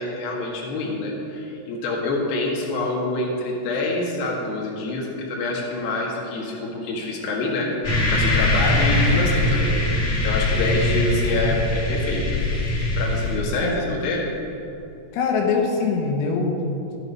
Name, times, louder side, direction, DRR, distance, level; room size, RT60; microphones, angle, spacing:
voice 1, 0.0-7.7 8.1-9.8 10.2-12.3 13.0-14.3, left 2 dB, 60° left, -2 dB, 3.1 m, -26 dB
sound 1, 7.8-13.4, left 1 dB, 25° left, 2.4 m, -21 dB
voice 2, 13.6-14.0 15.1-17.0, left 4 dB, 90° left, 0 dB, 4.1 m, -23 dB
13.5 x 9.8 x 5.4 m, 2.8 s
omnidirectional pair, 5.9 m